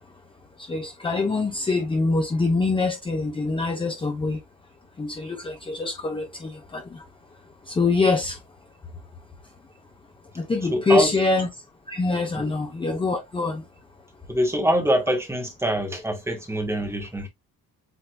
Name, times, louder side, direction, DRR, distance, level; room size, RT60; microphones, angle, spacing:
voice 1, 0.6-4.4 5.0-7.0 7.7-8.4 10.4-11.5 11.9-13.6, left 3 dB, 15° left, 0.8 m, -24 dB
voice 2, 10.7-11.1 12.3-12.5 14.3-17.3, right 1 dB, 5° right, 1.5 m, -24 dB
8.0 x 2.8 x 2.3 m
cardioid pair, 155°, 36 cm